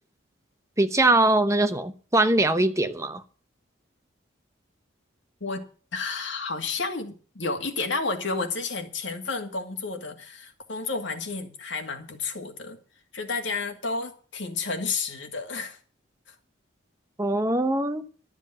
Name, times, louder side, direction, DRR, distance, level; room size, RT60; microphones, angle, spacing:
voice 1, 0.8-3.2 17.2-18.1, right 2 dB, 15° right, 0.9 m, -22 dB
voice 2, 5.9-12.8 13.1-15.8 16.3-16.4, left 4 dB, 70° left, 2.3 m, -31 dB
12.5 x 7.4 x 7.7 m
head